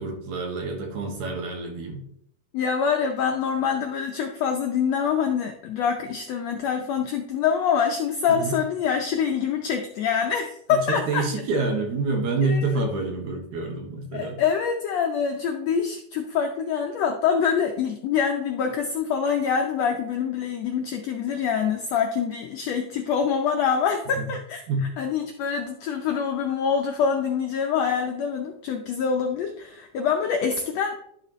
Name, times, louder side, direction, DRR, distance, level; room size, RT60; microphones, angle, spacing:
voice 1, 0.0-2.0 8.3-8.5 10.9-14.4 24.2-24.3 24.7-24.9, right 3 dB, 65° right, 2 dB, 2.7 m, -27 dB
voice 2, 2.5-11.2 12.4-12.8 14.1-31.0, left 7 dB, 75° left, 3 dB, 1.5 m, -25 dB
11.5 x 6.9 x 3.1 m, 0.70 s
omnidirectional pair, 3.8 m